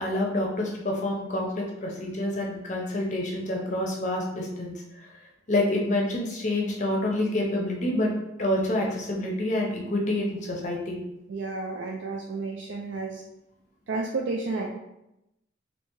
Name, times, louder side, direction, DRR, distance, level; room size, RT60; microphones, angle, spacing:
voice 1, 0.0-5.1 5.5-8.1 8.4-11.0, left 1 dB, 40° left, -1 dB, 0.6 m, -27 dB
voice 2, 11.3-13.2 13.9-14.7, right 3 dB, 65° right, -1 dB, 0.4 m, -31 dB
3.3 x 2.8 x 3.0 m, 0.89 s
head